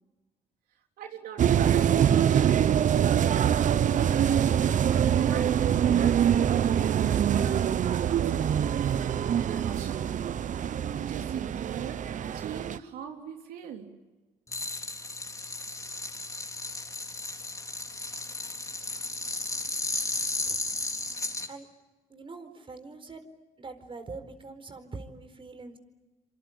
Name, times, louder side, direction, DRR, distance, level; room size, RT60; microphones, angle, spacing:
voice 1, 1.0-3.3 3.7-4.7 5.1-8.6 9.4-10.1 10.9-13.9, right 8 dB, 80° right, 4 dB, 3.4 m, -39 dB
sound 1, 1.4-12.8, right 9 dB, 55° right, 0.9 m, -24 dB
sound 2, 14.5-21.5, left 2 dB, 20° left, 3.9 m, -34 dB
voice 2, 22.1-23.2 23.6-25.8, right 3 dB, 35° right, 9 dB, 4.5 m, -43 dB
26.5 x 25.5 x 8.8 m, 1.2 s
supercardioid pair, 70°, 15 cm